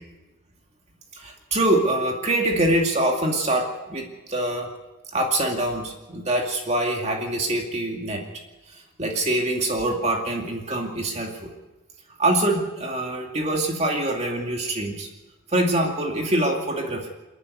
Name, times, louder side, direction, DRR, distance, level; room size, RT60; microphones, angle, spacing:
voice 1, 1.1-4.7 5.1-8.2 9.0-11.5 12.2-15.1 15.5-17.1, right 1 dB, 30° right, 1 dB, 2.4 m, -24 dB
29.0 x 9.7 x 9.6 m, 1.1 s
head